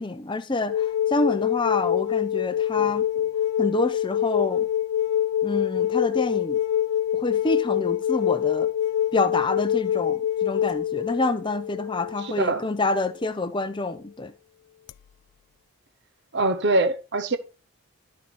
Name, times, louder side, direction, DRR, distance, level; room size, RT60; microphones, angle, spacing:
voice 1, 0.0-3.1 3.6-4.7 5.4-6.6 7.1-8.7 9.1-14.3, left 2 dB, 20° left, 0.6 m, -27 dB
sound 1, 0.7-13.1 14.9-15.0, left 10 dB, 90° left, 0.3 m, -25 dB
voice 2, 12.2-12.6 16.3-17.4, right 2 dB, 50° right, 0.8 m, -23 dB
12.5 x 4.8 x 4.2 m
head